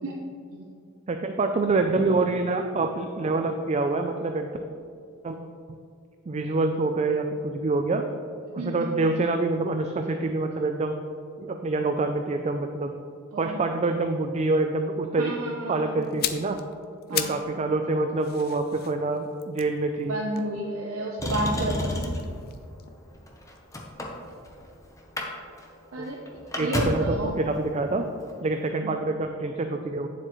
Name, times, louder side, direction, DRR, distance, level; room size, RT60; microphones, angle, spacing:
voice 1, 1.1-4.5 5.2-5.4 5.7-5.8 6.3-8.0 8.5-10.9 11.4-12.9 13.4-15.3 15.7-16.6 17.1-20.2 26.0-26.1 26.6-28.1 28.4-30.1, right 3 dB, 30° right, 5 dB, 0.4 m, -26 dB
voice 2, 8.6-9.0 13.3-13.7 15.2-16.1 17.1-17.4 20.1-22.2 25.9-26.2 26.5-27.4, right 1 dB, 75° right, -1 dB, 0.7 m, -31 dB
sound 1, 16.0-17.5 17.8-21.1 21.9-24.0 24.2-24.4, left 11 dB, 45° left, 0.4 m, -36 dB
Motor vehicle (road), 21.2-22.3 23.1-24.7 25.0-25.3 25.6-25.7 26.0-27.1 28.2-28.3, left 1 dB, 15° left, 0.8 m, -30 dB
9.1 x 7.5 x 3.1 m, 2.4 s
head